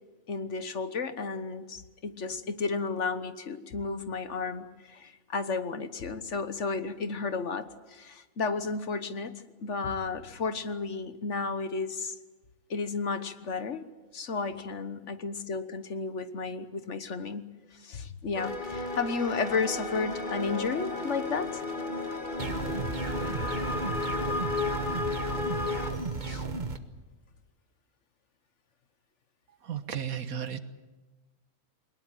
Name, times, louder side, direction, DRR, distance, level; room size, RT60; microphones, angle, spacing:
voice 1, 0.3-12.1 12.7-13.8 14.1-21.6 26.0-26.4, left 4 dB, 55° left, 11 dB, 1.5 m, -33 dB
sound 1, 18.3-25.9, left 3 dB, 35° left, 2.2 m, -33 dB
sound 2, 22.4-26.8, right 3 dB, 35° right, 1.3 m, -34 dB
voice 2, 29.6-30.6, right 8 dB, 80° right, 11 dB, 1.7 m, -34 dB
22.0 x 20.0 x 9.1 m, 1.2 s
omnidirectional pair, 1.5 m